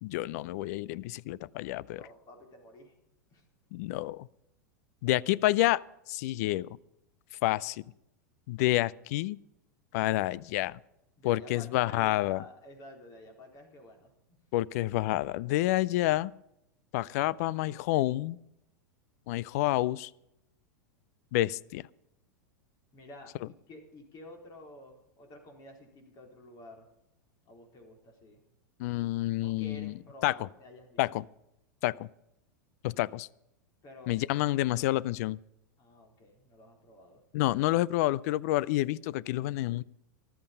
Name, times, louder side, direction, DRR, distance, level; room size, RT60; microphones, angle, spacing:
voice 1, 0.0-2.0 3.7-4.3 5.0-6.8 7.4-7.8 8.5-9.4 9.9-10.8 11.2-12.4 14.5-16.3 16.9-18.4 19.3-20.1 21.3-21.9 28.8-29.9 30.2-30.5 31.0-31.2 31.8-32.1 32.8-33.3 34.1-35.4 37.3-39.8, left 16 dB, 55° left, 0.5 m, -29 dB
voice 2, 1.9-2.9 3.3-3.4 11.2-14.4 22.9-26.9 27.5-28.4 29.4-31.0 33.8-34.5 35.8-37.2, left 2 dB, 35° left, 4.1 m, -50 dB
14.0 x 12.5 x 5.3 m
figure-of-eight pair, 95°, 10 cm